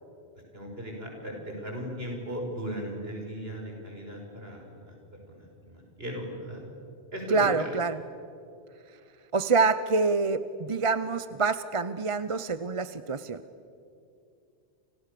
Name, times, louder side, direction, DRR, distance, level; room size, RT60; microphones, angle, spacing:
voice 1, 0.5-4.9 5.3-6.6 7.1-7.7, equal, 60° right, 1 dB, 6.2 m, -37 dB
voice 2, 7.3-8.0 9.3-13.4, right 4 dB, 35° right, 13 dB, 0.8 m, -26 dB
30.0 x 28.0 x 6.9 m, 2.5 s
omnidirectional pair, 1.1 m